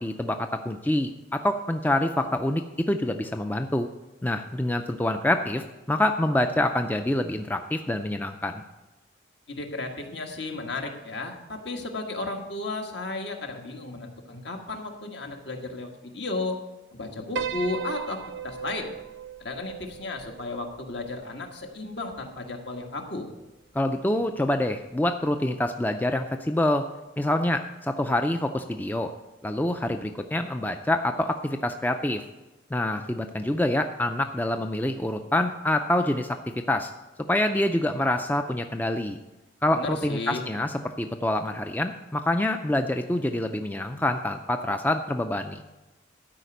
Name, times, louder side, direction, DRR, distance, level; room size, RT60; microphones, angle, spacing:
voice 1, 0.0-2.6 2.9-3.9 4.2-8.6 23.7-26.9 27.2-29.1 29.4-32.2 32.7-36.4 36.7-36.9 37.3-39.2 39.6-45.6, left 1 dB, 10° left, 6 dB, 0.3 m, -26 dB
voice 2, 9.5-16.6 16.9-18.9 19.4-23.3 39.7-40.4, left 2 dB, 65° left, 3 dB, 1.5 m, -34 dB
Piano, 17.4-21.8, right 6 dB, 70° right, 0.5 m, -37 dB
12.5 x 5.1 x 7.9 m, 1.0 s
head